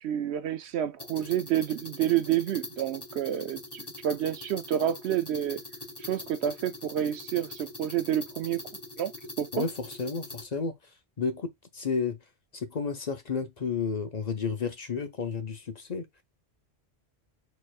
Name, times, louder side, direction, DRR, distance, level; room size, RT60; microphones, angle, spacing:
voice 1, 0.0-5.6 6.0-8.6 9.0-9.1 9.4-9.5, right 10 dB, 80° right, 0.9 m, -29 dB
sound 1, 1.0-10.4, left 2 dB, 25° left, 1.1 m, -43 dB
voice 2, 9.5-16.1, left 5 dB, 45° left, 0.8 m, -32 dB
4.3 x 4.3 x 2.4 m
omnidirectional pair, 1.1 m